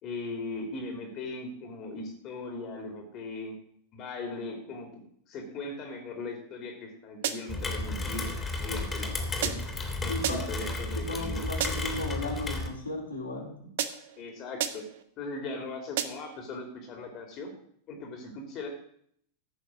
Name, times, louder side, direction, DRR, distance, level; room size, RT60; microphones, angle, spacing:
voice 1, 0.0-3.5 3.9-4.9 5.3-8.3 8.6-9.6 10.0-11.5 14.2-14.8 15.2-17.5 17.9-18.7, left 2 dB, 35° left, 3 dB, 2.9 m, -39 dB
sound 1, 7.2-7.7 9.4-9.8 10.2-10.7 11.6-12.0 13.8-14.2 14.6-15.0 16.0-16.4, right 10 dB, 55° right, 1.0 m, -33 dB
Rain, 7.5-12.7, left 2 dB, 15° left, 2.8 m, -33 dB
voice 2, 10.1-10.4 11.1-13.5, left 2 dB, 75° left, -3 dB, 4.0 m, -35 dB
15.0 x 6.6 x 6.3 m, 0.65 s
figure-of-eight pair, 90°, 0 cm